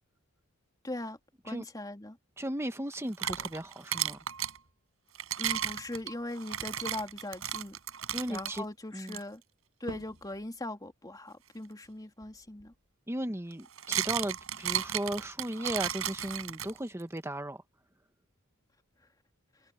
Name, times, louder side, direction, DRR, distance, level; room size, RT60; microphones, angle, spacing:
voice 1, 0.8-1.2 1.4-2.2 5.4-7.8 8.3-9.4 9.8-12.7, left 1 dB, 20° left, 2.9 m, -40 dB
voice 2, 2.4-4.2 8.1-8.6 8.9-9.2 13.1-17.6, right 1 dB, 15° right, 1.5 m, -36 dB
sound 1, 2.9-4.6 5.1-8.6 9.1-9.2 9.9-10.1 12.2-12.3 13.5-17.0, right 10 dB, 70° right, 7.0 m, -34 dB
head